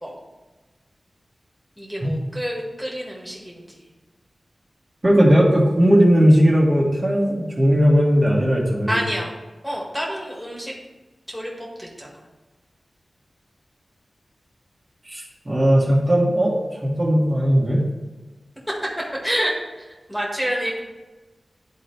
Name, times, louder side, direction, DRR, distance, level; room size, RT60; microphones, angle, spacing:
voice 1, 1.8-3.8 8.9-9.3 9.6-10.7 11.3-12.1 19.2-19.5 20.1-20.8, equal, 5° left, -3 dB, 1.9 m, -28 dB
voice 2, 5.0-9.0 15.1-16.6 16.8-17.8, equal, 35° right, -4 dB, 1.8 m, -17 dB
11.5 x 3.9 x 3.3 m, 1.2 s
wide cardioid pair, 70°, 0 cm